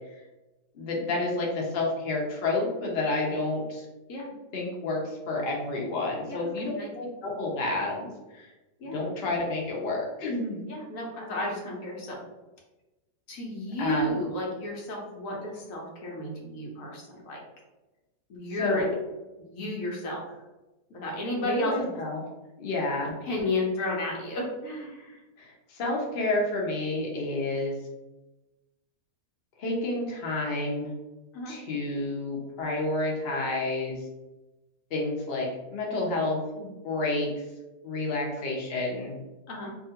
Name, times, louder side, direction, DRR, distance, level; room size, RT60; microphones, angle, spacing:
voice 1, 0.7-3.9 4.5-8.5 8.9-10.7 13.8-14.1 18.6-18.9 21.4-22.2 22.6-23.1 25.4-27.8 29.6-30.9 31.5-34.0 34.9-37.3 37.8-39.2, left 2 dB, 85° left, -2 dB, 0.5 m, -30 dB
voice 2, 6.3-6.9 8.8-9.0 10.7-12.2 13.3-17.4 18.3-18.9 19.4-20.2 20.9-21.9 23.2-25.2 31.3-31.5 38.4-38.5 39.0-39.1 39.5-39.7, left 1 dB, 60° left, -2 dB, 1.0 m, -32 dB
2.8 x 2.4 x 2.8 m, 1.1 s
omnidirectional pair, 1.9 m